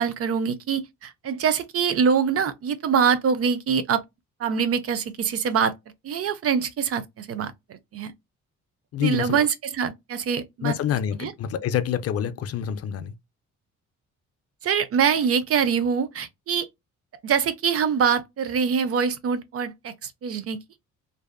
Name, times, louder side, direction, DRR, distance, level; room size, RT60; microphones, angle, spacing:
voice 1, 0.0-4.0 4.4-5.7 6.0-8.1 9.0-10.7 11.2-11.3 14.6-16.7 17.2-20.6, right 7 dB, 50° right, 0.5 m, -24 dB
voice 2, 8.9-9.5 10.6-13.1, left 9 dB, 55° left, 0.5 m, -27 dB
2.6 x 2.3 x 2.2 m
cardioid pair, 90°, 30 cm